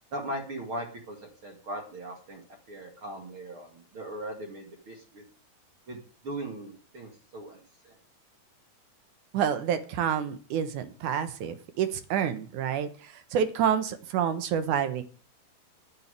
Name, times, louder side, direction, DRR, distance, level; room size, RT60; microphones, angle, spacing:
voice 1, 0.1-2.4 2.7-5.2 5.9-7.9, right 1 dB, 40° right, 2 dB, 2.6 m, -39 dB
voice 2, 9.3-15.0, right 8 dB, 65° right, 11 dB, 2.3 m, -28 dB
11.0 x 7.7 x 9.8 m, 0.40 s
omnidirectional pair, 4.4 m